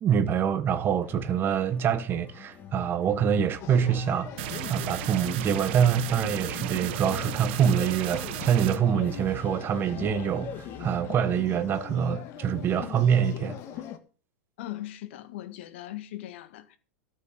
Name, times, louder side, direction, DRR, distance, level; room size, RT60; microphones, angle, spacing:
voice 1, 0.0-4.3 4.7-13.6, right 8 dB, 30° right, 1.4 m, -25 dB
sound 1, 1.0-11.4, left 6 dB, 25° left, 3.0 m, -48 dB
sound 2, 3.6-14.0, left 10 dB, 40° left, 1.9 m, -40 dB
sound 3, 4.4-8.8, right 18 dB, 55° right, 0.6 m, -35 dB
voice 2, 14.6-16.8, left 14 dB, 60° left, 1.8 m, -39 dB
13.5 x 6.5 x 8.6 m
hypercardioid pair, 100°, 7 cm